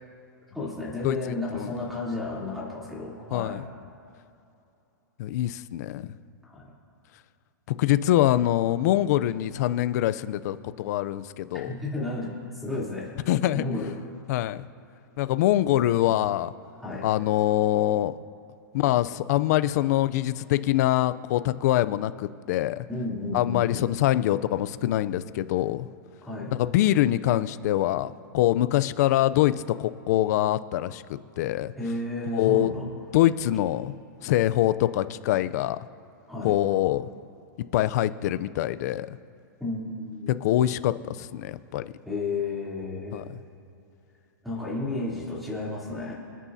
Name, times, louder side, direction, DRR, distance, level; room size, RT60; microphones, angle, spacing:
voice 1, 0.5-3.6 6.4-6.7 11.7-13.1 13.5-13.9 16.8-17.1 22.9-23.9 26.3-26.5 31.8-32.9 36.3-36.5 39.6-40.3 42.0-43.3 44.4-46.1, left 2 dB, ahead, -8 dB, 3.2 m, -32 dB
voice 2, 1.0-1.7 3.3-3.6 5.2-6.2 7.7-11.8 13.3-13.6 14.3-14.6 15.2-16.5 17.0-18.2 18.7-22.9 23.3-25.9 26.6-31.7 32.3-32.7 33.1-33.9 34.2-35.8 36.4-37.1 37.7-39.2 40.4-41.9 43.1-43.2, left 14 dB, 50° left, 14 dB, 0.5 m, -24 dB
27.5 x 10.0 x 2.8 m, 2.7 s
hypercardioid pair, 150°, 11 cm